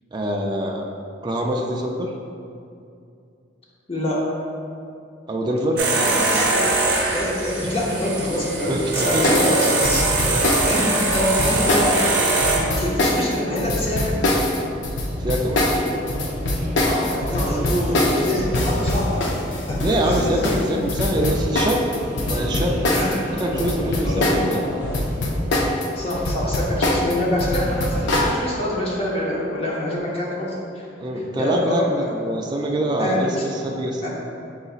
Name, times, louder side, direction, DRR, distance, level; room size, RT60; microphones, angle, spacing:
voice 1, 0.1-0.9 1.2-2.1 5.3-5.8 8.7-9.5 10.2-10.4 15.2-15.8 19.8-21.8 22.3-22.8 23.4-24.6 31.0-34.0, right 1 dB, 25° right, 0 dB, 0.3 m, -24 dB
voice 2, 3.9-4.2 6.0-6.7 7.1-10.1 10.7-14.3 16.8-19.4 19.7-20.6 22.9-23.2 24.0-24.5 26.0-30.9 31.4-32.1 33.0-33.5 34.0-34.1, left 1 dB, 35° left, -4 dB, 0.6 m, -25 dB
sound 1, 5.8-12.6, right 3 dB, 70° right, 0.7 m, -22 dB
sound 2, 9.2-24.6 24.8-28.3, left 1 dB, 90° left, 0.5 m, -23 dB
sound 3, 14.1-28.2, equal, 10° right, 0.7 m, -33 dB
5.6 x 3.9 x 2.4 m, 2.5 s
head